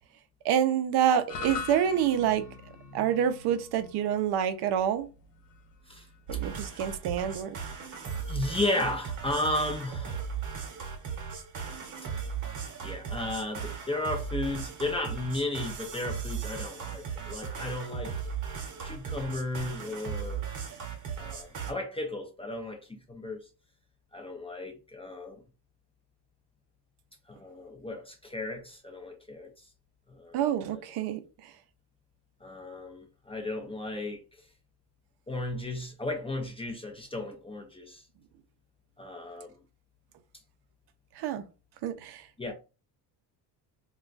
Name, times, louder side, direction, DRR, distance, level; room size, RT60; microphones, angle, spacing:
voice 1, 0.4-2.5 2.9-5.1 6.3-7.6 30.3-31.5 41.2-41.4 41.8-42.3, right 9 dB, 65° right, 0.5 m, -27 dB
sound 1, 1.3-9.7, left 5 dB, 85° left, 0.9 m, -44 dB
voice 2, 6.3-6.8 8.3-10.3 12.8-18.2 18.8-20.4 21.2-23.5 24.1-25.4 27.3-29.5 30.1-30.4 32.4-34.2 35.3-38.0 39.0-39.5 42.4-42.5, left 2 dB, 15° left, 0.4 m, -34 dB
sound 2, 6.3-21.7, right 7 dB, 45° right, 0.9 m, -37 dB
2.3 x 2.2 x 3.8 m
cardioid pair, 130°, 43 cm